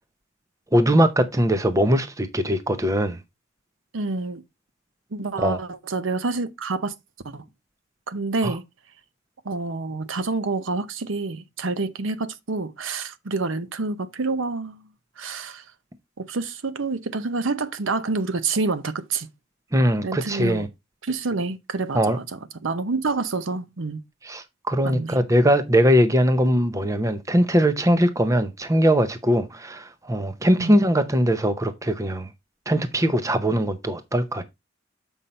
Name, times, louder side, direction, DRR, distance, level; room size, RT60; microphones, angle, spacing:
voice 1, 0.7-3.2 5.4-5.6 8.4-8.5 19.7-20.7 21.9-22.2 24.2-32.3 32.7-34.4, equal, 15° right, 0.6 m, -21 dB
voice 2, 3.9-4.4 5.1-6.9 7.2-7.4 8.1-8.6 9.4-14.8 15.2-15.6 16.2-19.3 20.0-20.7 21.0-24.0 24.8-25.2 30.5-30.7, right 3 dB, 80° right, 0.8 m, -28 dB
7.2 x 5.4 x 4.2 m
head